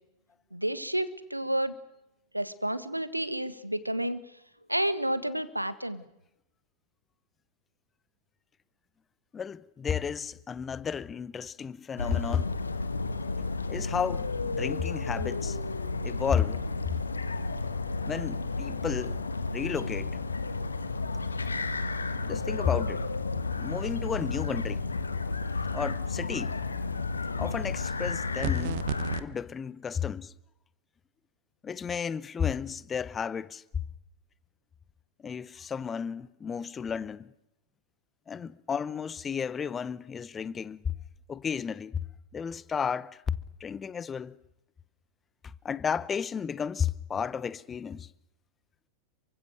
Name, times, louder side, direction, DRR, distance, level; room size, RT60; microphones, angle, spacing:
voice 1, 0.5-1.7 2.3-4.2 4.7-6.0, right 1 dB, 90° right, 1.5 m, -30 dB
voice 2, 9.3-12.5 13.7-15.6 16.0-16.6 18.0-19.2 19.5-20.2 22.2-23.0 23.6-24.9 25.7-26.6 27.4-28.8 29.2-30.3 31.6-33.6 35.2-37.3 38.3-40.8 41.3-42.0 42.3-44.3 45.6-48.1, left 7 dB, 20° left, 1.0 m, -32 dB
sound 1, 12.0-29.2, left 3 dB, 75° left, 1.6 m, -32 dB
sound 2, 28.4-29.2, right 15 dB, 50° right, 1.1 m, -33 dB
28.5 x 24.0 x 6.6 m
figure-of-eight pair, 90°, 0 cm